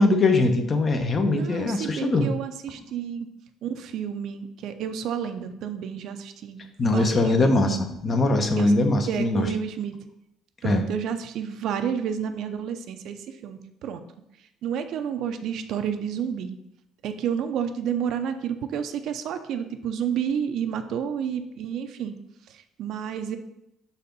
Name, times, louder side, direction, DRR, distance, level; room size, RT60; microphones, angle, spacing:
voice 1, 0.0-2.3 6.8-9.5 10.6-10.8, left 2 dB, 35° left, 6 dB, 0.9 m, -21 dB
voice 2, 1.3-3.3 3.6-7.5 8.6-8.7 9.1-9.9 10.6-14.0 14.6-16.6 17.0-22.2 22.5-23.4, right 8 dB, 65° right, 8 dB, 0.6 m, -30 dB
5.7 x 4.2 x 5.2 m, 0.84 s
cardioid pair, 110°, 0 cm